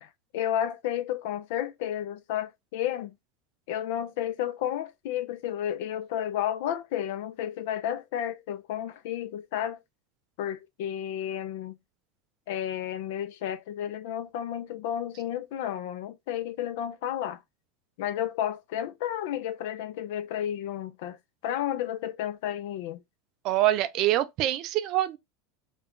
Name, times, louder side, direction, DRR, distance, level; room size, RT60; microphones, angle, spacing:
voice 1, 0.0-3.1 3.7-9.8 10.4-11.8 12.5-17.4 18.0-21.2 21.4-23.0, left 10 dB, 70° left, 0.4 m, -32 dB
voice 2, 23.4-25.2, right 14 dB, 50° right, 0.4 m, -25 dB
2.4 x 2.2 x 3.6 m
supercardioid pair, 130°, 0 cm